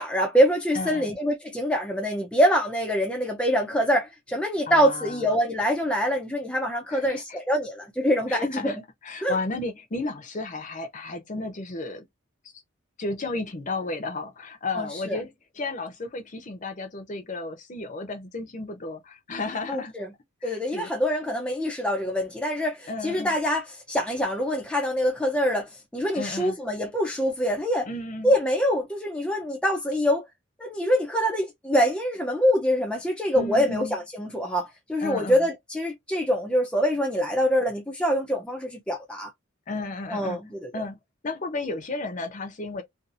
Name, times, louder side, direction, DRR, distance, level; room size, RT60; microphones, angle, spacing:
voice 1, 0.0-8.8 9.2-9.4 14.8-15.2 19.7-20.1 20.4-27.9 28.2-30.2 30.6-39.3 40.1-40.7, equal, 5° left, 0.4 m, -25 dB
voice 2, 0.7-1.1 4.7-5.2 6.9-7.4 8.3-8.8 9.0-12.0 13.0-15.3 15.6-19.9 20.4-20.9 22.9-23.4 26.1-26.6 27.9-28.3 33.3-34.0 35.0-35.5 39.7-40.4 40.7-41.0 41.2-42.8, left 2 dB, 40° left, 0.7 m, -33 dB
2.7 x 2.4 x 2.4 m
head